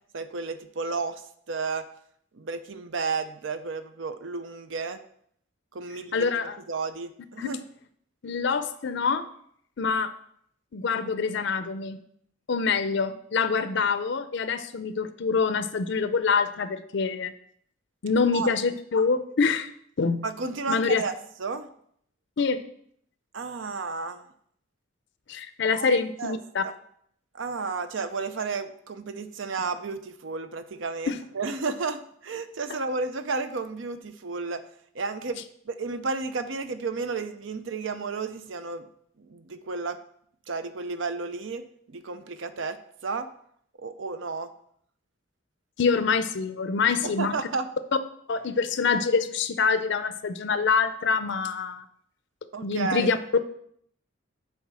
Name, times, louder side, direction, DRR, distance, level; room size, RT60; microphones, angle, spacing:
voice 1, 0.1-1.9 2.3-5.0 5.7-6.3 6.7-7.6 18.3-18.5 20.2-21.7 23.3-24.3 25.7-26.4 26.6-26.7 27.3-34.7 34.9-38.9 39.2-40.0 40.5-41.6 41.9-43.3 43.8-44.5 47.0-47.7 52.5-53.1, right 4 dB, 70° right, 10 dB, 0.6 m, -32 dB
voice 2, 6.1-6.6 7.4-7.5 8.2-9.3 9.8-10.1 10.7-12.0 12.5-17.3 18.0-19.7 20.0-20.2 20.7-21.0 22.4-22.6 25.3-26.6 31.1-31.2 45.8-47.3 48.3-51.8 52.6-53.2, left 5 dB, 65° left, 11 dB, 0.5 m, -25 dB
7.1 x 4.5 x 6.1 m, 0.66 s
head